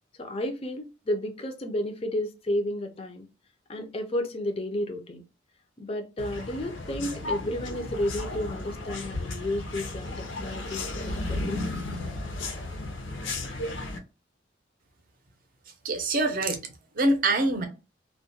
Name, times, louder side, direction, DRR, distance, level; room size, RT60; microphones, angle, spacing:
voice 1, 0.2-3.2 3.7-5.2 5.8-11.6, left 1 dB, 30° left, 0.4 m, -32 dB
sound 1, 6.2-14.0, left 2 dB, 90° left, 0.6 m, -34 dB
voice 2, 15.8-17.7, right 2 dB, 45° right, 0.6 m, -25 dB
2.3 x 2.1 x 2.6 m
head